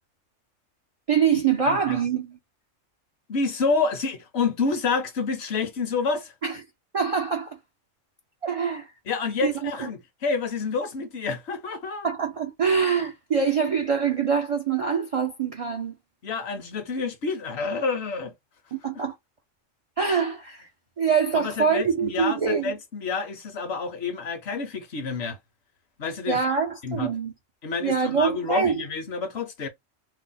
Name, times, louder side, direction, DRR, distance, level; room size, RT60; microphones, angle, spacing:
voice 1, 1.1-2.4 6.4-6.6 6.9-7.6 8.4-8.9 9.4-9.9 12.0-15.9 18.7-19.2 20.0-20.7 21.0-22.7 26.3-27.3 27.8-28.8, right 6 dB, 65° right, 0.3 m, -24 dB
voice 2, 1.6-2.0 3.3-6.3 9.1-12.1 16.2-18.3 21.3-25.4 26.0-26.4 26.8-27.1 27.6-29.7, left 4 dB, 60° left, 0.9 m, -28 dB
2.7 x 2.0 x 3.8 m
omnidirectional pair, 1.3 m